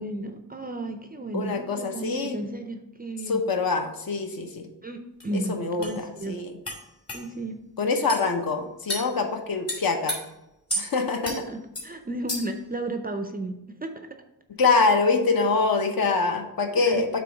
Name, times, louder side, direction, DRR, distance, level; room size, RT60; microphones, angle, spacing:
voice 1, 0.0-3.4 4.8-6.4 7.1-7.6 11.3-14.2 16.8-17.0, right 2 dB, 20° right, 6 dB, 0.4 m, -34 dB
voice 2, 1.3-2.4 3.3-4.7 5.5-6.5 7.8-10.2 10.8-11.3 14.6-17.2, left 4 dB, 55° left, 4 dB, 0.9 m, -24 dB
sound 1, 5.2-5.3 5.8-6.0 6.7-6.8 7.1-7.2 8.1-8.3 8.9-9.1 9.7-10.2 10.7-10.9 11.2-11.4 11.8-11.9 12.3-12.6, equal, 35° left, 2.0 m, -31 dB
7.7 x 3.1 x 5.0 m, 0.91 s
wide cardioid pair, 125°, 42 cm